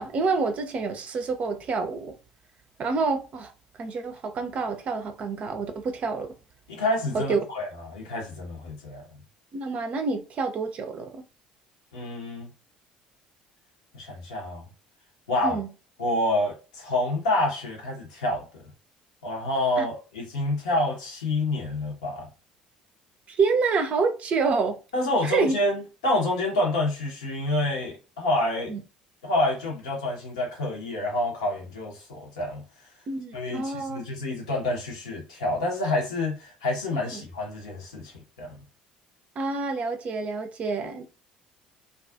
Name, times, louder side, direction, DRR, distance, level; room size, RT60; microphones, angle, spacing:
voice 1, 0.0-2.1 2.8-3.5 3.8-6.3 7.1-7.4 9.5-11.2 15.4-15.7 19.8-19.9 23.3-24.8 25.2-25.5 28.7-28.8 33.1-34.0 37.1-37.2 39.4-41.0, right 4 dB, 40° right, 0.5 m, -27 dB
voice 2, 6.7-9.0 11.9-12.5 13.9-14.6 15.3-15.6 16.0-18.7 19.2-22.3 24.9-28.7 29.2-32.6 33.3-38.1 38.4-38.6, left 1 dB, 75° left, 0.8 m, -28 dB
2.3 x 2.3 x 2.3 m
figure-of-eight pair, 55°, 3 cm